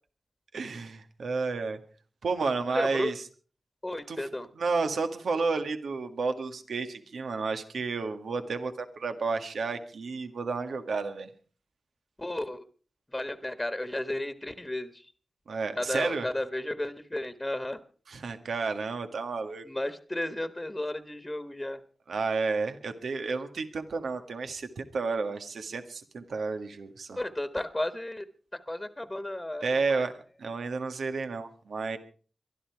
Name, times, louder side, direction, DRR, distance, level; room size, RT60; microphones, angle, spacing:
voice 1, 0.5-1.8 2.2-3.2 4.1-4.3 4.6-11.3 15.5-16.3 18.1-19.7 22.1-27.2 29.6-30.1 30.4-32.0, right 4 dB, 80° right, 7 dB, 1.7 m, -31 dB
voice 2, 2.7-3.1 3.8-4.5 12.2-12.6 13.1-15.1 15.8-17.8 19.6-21.8 27.2-28.2 28.5-30.1, left 1 dB, 15° left, 10 dB, 1.4 m, -33 dB
23.0 x 12.5 x 4.7 m, 0.41 s
cardioid pair, 55°, 0 cm